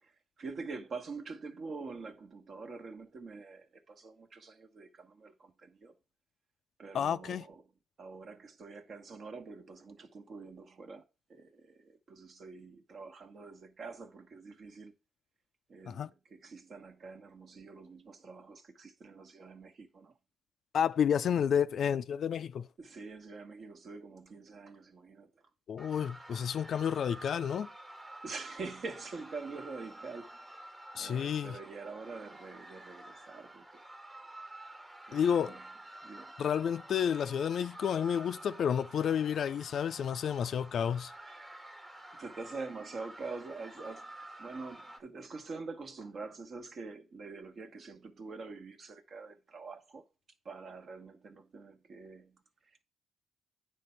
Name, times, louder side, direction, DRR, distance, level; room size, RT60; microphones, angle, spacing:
voice 1, 0.0-5.9 6.8-7.6 8.0-11.0 11.3-14.9 15.7-20.1 22.8-25.3 28.2-33.7 35.1-35.7 36.0-36.3 42.2-44.1 44.4-50.0 50.4-52.8, right 4 dB, 50° right, 1.2 m, -45 dB
voice 2, 6.9-7.4 15.9-16.1 20.7-22.7 25.7-27.7 31.0-31.6 35.1-35.6 36.4-41.1, left 8 dB, 60° left, 0.3 m, -30 dB
sound 1, 25.8-45.0, right 1 dB, 20° right, 1.3 m, -50 dB
9.1 x 3.4 x 5.6 m
cardioid pair, 90°, 0 cm